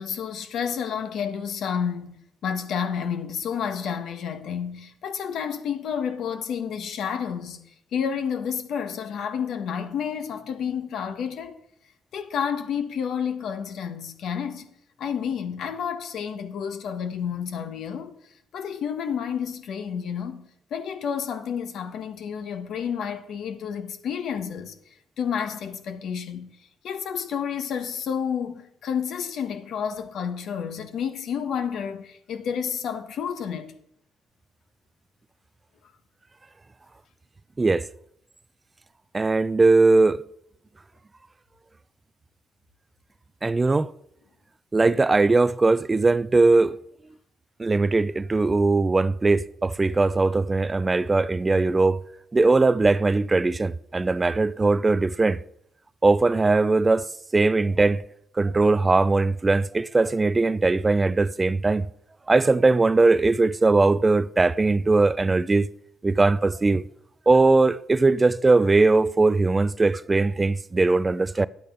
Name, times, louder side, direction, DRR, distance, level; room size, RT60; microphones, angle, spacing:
voice 1, 0.0-2.2 2.4-7.6 7.9-11.6 12.1-14.7 15.0-18.1 18.5-24.7 25.2-26.5 26.8-33.7, left 7 dB, 70° left, 1.4 m, -30 dB
voice 2, 39.1-40.2 43.4-43.9 44.7-46.8 47.6-52.0 52.3-55.4 56.0-58.0 58.4-61.9 62.3-65.7 66.0-66.8 67.3-71.5, right 3 dB, 25° right, 0.4 m, -20 dB
10.5 x 8.5 x 5.5 m
cardioid pair, 90°, 0 cm